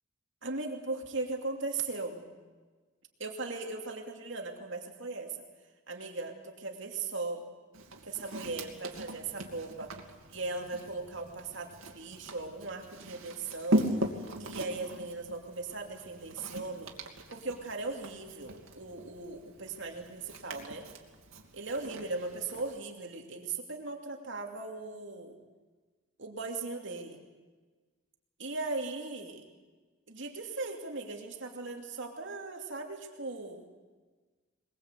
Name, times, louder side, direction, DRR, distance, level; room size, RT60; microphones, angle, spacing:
voice 1, 0.4-2.2 3.2-5.4 5.9-7.4 8.0-9.9 10.3-13.9 14.4-16.9 17.3-20.9 21.5-25.4 26.2-27.2 28.4-29.4 30.1-33.7, right 3 dB, 65° right, 2 dB, 2.7 m, -38 dB
Walk footsteps, 7.7-22.8, right 1 dB, 85° right, 2.5 m, -39 dB
21.5 x 21.0 x 8.2 m, 1.3 s
head